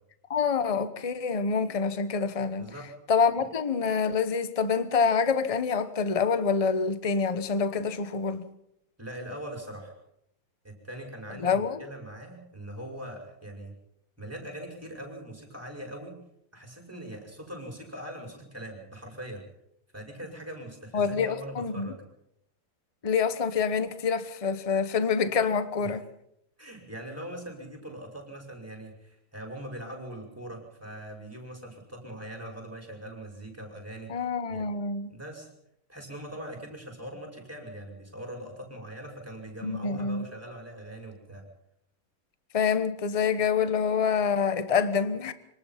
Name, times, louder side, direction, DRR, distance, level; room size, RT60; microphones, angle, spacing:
voice 1, 0.3-2.7 3.1-8.4 11.4-11.8 20.9-21.9 23.0-26.0 34.1-35.1 39.6-40.3 42.5-45.3, left 5 dB, 30° left, 0.6 m, -26 dB
voice 2, 2.6-2.9 9.0-10.0 10.6-13.7 14.2-16.2 16.5-19.4 19.9-22.0 25.8-26.0 26.6-34.6 35.1-35.5 35.9-41.4, right 1 dB, 5° right, 5.7 m, -41 dB
25.5 x 19.0 x 5.9 m
omnidirectional pair, 2.4 m